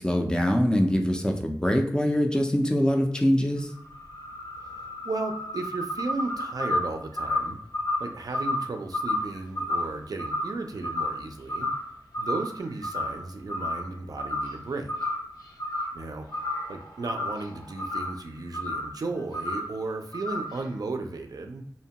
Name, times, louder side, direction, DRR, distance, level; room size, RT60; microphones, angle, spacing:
voice 1, 0.0-3.7, equal, 10° left, 3 dB, 0.4 m, -23 dB
sound 1, 3.6-11.2 11.5-11.9 12.1-13.2 13.5-13.9 14.2-14.6 14.9-16.0 16.3-18.2 18.5-18.9 19.3-19.7 20.1-20.6, left 1 dB, 75° left, 0.6 m, -31 dB
voice 2, 4.6-7.6 8.0-11.7 12.2-15.1 15.9-21.7, right 3 dB, 65° right, 5 dB, 0.3 m, -35 dB
2.7 x 2.1 x 2.8 m, 0.75 s
wide cardioid pair, 75°, 7 cm